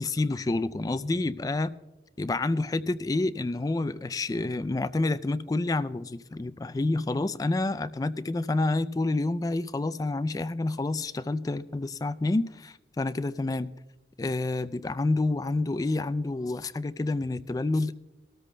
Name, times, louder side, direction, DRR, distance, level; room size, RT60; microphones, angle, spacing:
voice 1, 0.0-1.7 2.2-13.7 14.2-17.9, left 2 dB, 20° left, 0.3 m, -28 dB
21.5 x 13.5 x 2.2 m
head